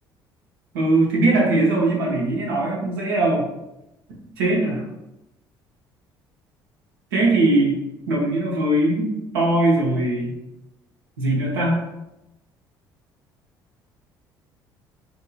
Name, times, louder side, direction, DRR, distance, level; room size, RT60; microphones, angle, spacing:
voice 1, 0.7-3.5 4.4-4.8 7.1-7.8 8.1-10.3 11.2-11.8, right 2 dB, 75° right, -3 dB, 0.8 m, -20 dB
2.8 x 2.6 x 2.3 m, 0.93 s
figure-of-eight pair, 55°, 12 cm